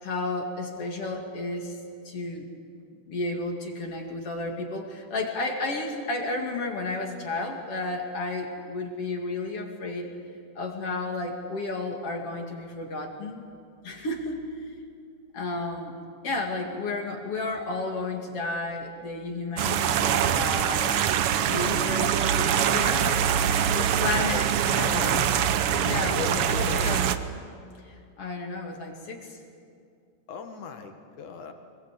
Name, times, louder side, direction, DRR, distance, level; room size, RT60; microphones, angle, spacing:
voice 1, 0.0-1.8 2.0-2.5 3.1-10.1 10.5-13.4 13.8-14.7 15.3-16.0 16.2-21.0 21.5-23.2 23.7-25.2 25.8-26.2 26.5-27.0 27.8-29.4, left 2 dB, 50° left, 2 dB, 3.1 m, -32 dB
sound 1, 19.6-27.2, right 9 dB, 75° right, 1.3 m, -24 dB
voice 2, 21.3-22.2 23.3-25.2 25.9-27.1 30.3-31.5, left 6 dB, 70° left, 5 dB, 3.2 m, -39 dB
25.0 x 21.5 x 8.3 m, 2.4 s
omnidirectional pair, 3.6 m